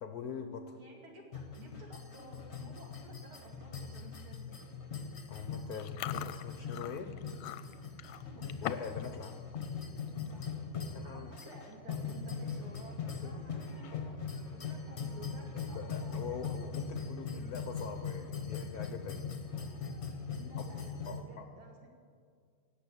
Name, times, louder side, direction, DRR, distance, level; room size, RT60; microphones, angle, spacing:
voice 1, 0.0-0.8 5.3-7.2 7.5-8.0 8.6-9.5 10.9-11.3 13.2-13.5 15.5-19.2 20.0-20.2 20.6-20.7 21.0-21.5, left 6 dB, 60° left, 6 dB, 1.1 m, -43 dB
voice 2, 0.8-4.7 8.1-8.5 10.2-10.6 11.0-16.4 20.3-21.9, right 1 dB, 75° right, 0 dB, 3.2 m, -54 dB
sound 1, 1.3-21.2, left 5 dB, 40° left, 1.2 m, -41 dB
Chewing mastication, 5.8-9.0 9.3-9.7 10.1-10.3 11.1-11.2 11.4-11.7 12.1-12.2 13.7-14.3, left 12 dB, 75° left, 1.3 m, -43 dB
Wind instrument woodwind instrument, 12.4-16.5, right 4 dB, 5° right, 2.8 m, -64 dB
17.5 x 7.6 x 8.6 m, 2.2 s
omnidirectional pair, 2.3 m